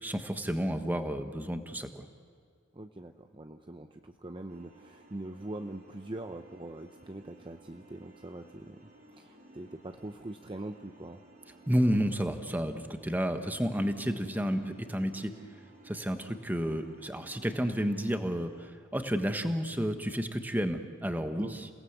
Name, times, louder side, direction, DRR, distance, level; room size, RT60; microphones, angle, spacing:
voice 1, 0.0-2.0 11.7-15.3 15.8-21.7, equal, 10° right, 7 dB, 1.3 m, -31 dB
voice 2, 2.7-8.8 9.1-11.2 21.3-21.5, right 1 dB, 25° right, 6 dB, 0.8 m, -43 dB
sound 1, 4.5-18.7, right 1 dB, 50° right, 4.8 m, -56 dB
28.5 x 18.5 x 8.1 m, 2.2 s
head